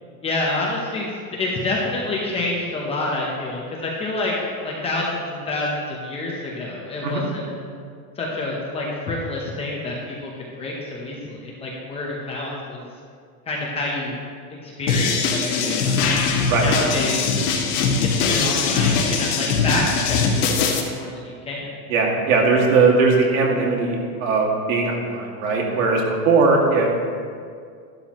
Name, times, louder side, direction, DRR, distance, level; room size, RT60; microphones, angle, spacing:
voice 1, 0.2-7.5 8.2-10.3 10.6-12.9 13.5-14.2 14.6-16.1 16.5-17.3 17.9-21.7, left 2 dB, 15° left, -3 dB, 0.8 m, -27 dB
sound 1, 14.9-20.8, left 5 dB, 85° left, 2.0 m, -21 dB
voice 2, 21.9-24.0 24.2-26.9, right 4 dB, 60° right, -1 dB, 2.3 m, -19 dB
12.0 x 11.5 x 3.0 m, 2.2 s
supercardioid pair, 175°, 45 cm